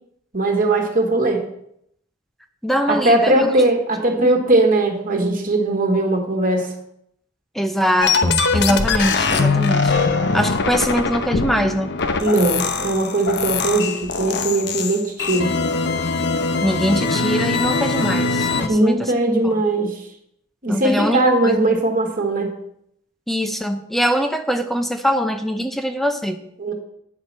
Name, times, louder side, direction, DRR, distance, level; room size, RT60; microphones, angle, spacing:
voice 1, 0.3-1.4 2.9-6.7 12.2-15.5 18.7-20.0 20.6-22.5 26.6-26.7, right 2 dB, 45° right, 2 dB, 1.7 m, -19 dB
voice 2, 2.6-3.5 7.5-9.9 10.3-12.0 16.6-19.1 19.4-19.5 20.7-21.8 23.3-26.4, equal, ahead, 7 dB, 0.7 m, -22 dB
sound 1, 8.0-18.7, left 4 dB, 55° left, 0.9 m, -21 dB
9.9 x 4.9 x 7.3 m, 0.73 s
head